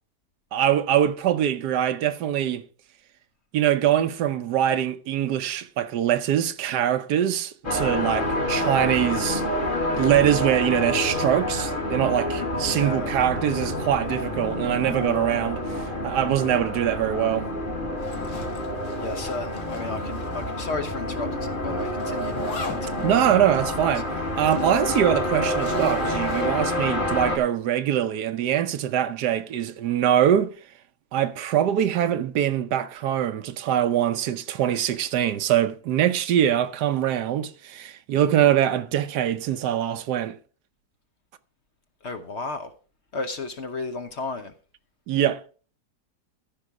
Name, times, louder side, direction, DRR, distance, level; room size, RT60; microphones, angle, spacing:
voice 1, 0.5-2.6 3.5-9.4 10.0-17.5 23.0-24.1 24.4-30.5 31.1-40.3 45.1-45.4, right 10 dB, 75° right, 1.3 m, -23 dB
sound 1, 7.6-27.4, left 1 dB, 30° left, 1.8 m, -28 dB
voice 2, 12.6-13.1 19.0-22.4 22.7-23.2 23.5-23.7 24.0-24.2 42.0-42.7 43.1-44.5, left 3 dB, 50° left, 1.0 m, -33 dB
sound 2, 13.6-25.3, left 2 dB, 15° right, 0.6 m, -49 dB
Zipper (clothing), 18.0-20.6 20.8-20.9 21.8-26.7, left 5 dB, 65° left, 1.8 m, -41 dB
14.0 x 5.7 x 4.8 m
omnidirectional pair, 1.8 m